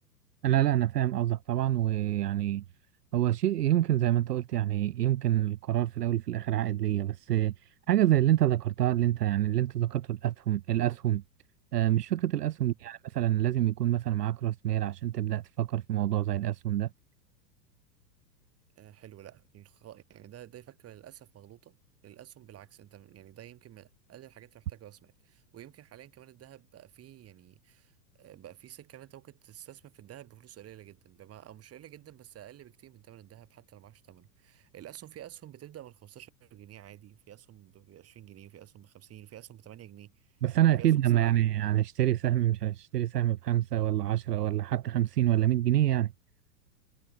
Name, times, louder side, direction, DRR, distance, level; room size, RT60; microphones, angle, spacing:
voice 1, 0.4-2.6 3.1-11.2 11.7-16.9 40.4-46.1, right 13 dB, 70° right, 0.8 m, -27 dB
voice 2, 18.8-21.7 22.0-40.4 40.8-41.5, right 12 dB, 30° right, 5.1 m, -50 dB
figure-of-eight pair, 100°, 50 cm